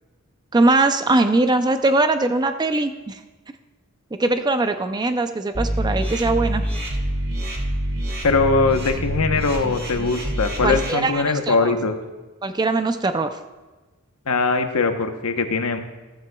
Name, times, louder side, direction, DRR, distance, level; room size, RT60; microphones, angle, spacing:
voice 1, 0.5-3.2 4.1-6.6 10.6-11.7 12.4-13.4, right 2 dB, 20° right, 8 dB, 0.4 m, -21 dB
sound 1, 5.5-10.9, right 1 dB, 45° right, 1.7 m, -26 dB
voice 2, 8.2-12.0 14.3-15.8, left 3 dB, 75° left, 6 dB, 0.9 m, -21 dB
14.0 x 13.5 x 2.3 m, 1.2 s
head